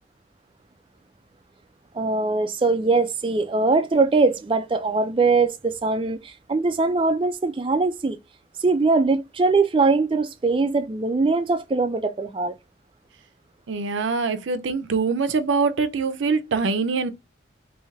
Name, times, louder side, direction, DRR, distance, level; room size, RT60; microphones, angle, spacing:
voice 1, 1.9-8.2 8.6-12.5, right 3 dB, 25° right, 0.3 m, -21 dB
voice 2, 13.7-17.1, right 4 dB, 85° right, 0.5 m, -24 dB
3.2 x 2.7 x 3.4 m
head